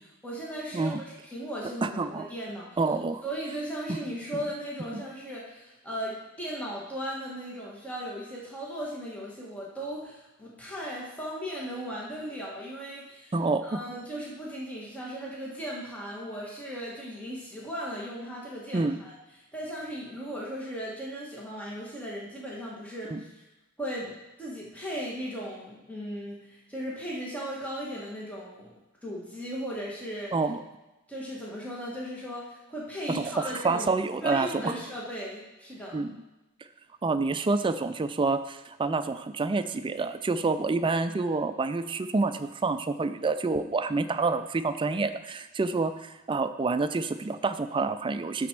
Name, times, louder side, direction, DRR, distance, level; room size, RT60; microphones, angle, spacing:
voice 1, 0.2-2.8 3.2-13.3 13.6-19.1 19.5-23.4 23.8-28.7 29.0-30.3 31.1-33.9 34.2-36.0, equal, 5° left, -5 dB, 1.4 m, -37 dB
voice 2, 1.8-2.3 2.8-3.2 3.9-4.0 4.3-4.4 4.9-5.0 13.3-13.8 18.7-19.0 23.1-23.2 30.3-30.6 33.1-34.7 35.9-36.2 37.0-48.5, right 3 dB, 25° right, 10 dB, 0.4 m, -28 dB
11.0 x 4.2 x 5.9 m, 1.0 s
head